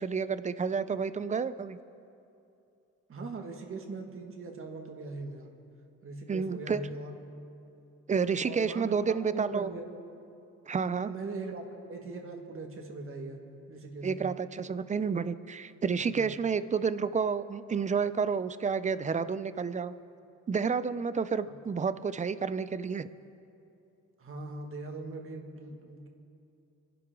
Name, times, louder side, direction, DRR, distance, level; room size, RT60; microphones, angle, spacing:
voice 1, 0.0-1.8 6.3-6.8 8.1-9.7 10.7-11.1 14.0-19.9 20.5-23.1, right 5 dB, 25° right, 14 dB, 0.5 m, -30 dB
voice 2, 3.1-5.5 6.0-7.2 8.4-9.9 10.7-11.6 11.9-13.4 13.7-14.3 16.1-16.2 24.2-26.1, right 3 dB, 45° right, 3 dB, 2.1 m, -40 dB
25.5 x 11.0 x 3.8 m, 2.7 s
cardioid pair, 90°, 30 cm